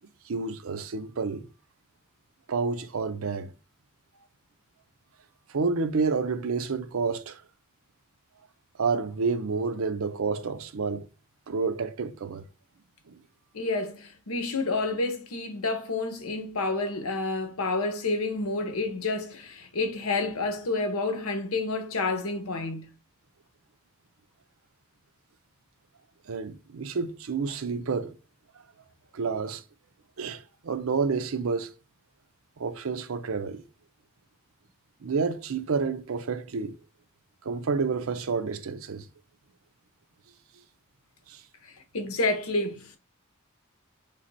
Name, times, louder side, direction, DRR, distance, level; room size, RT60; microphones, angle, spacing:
voice 1, 0.3-1.5 2.5-3.5 5.5-7.4 8.8-11.1 11.5-12.4 13.1-13.2 26.3-28.1 29.1-29.6 30.2-31.7 32.6-33.6 35.0-36.8 37.4-39.0 41.3-41.4, right 4 dB, 70° right, 0.5 m, -29 dB
voice 2, 13.5-22.9 41.6-43.0, left 3 dB, 85° left, 0.9 m, -29 dB
3.3 x 3.1 x 4.0 m
head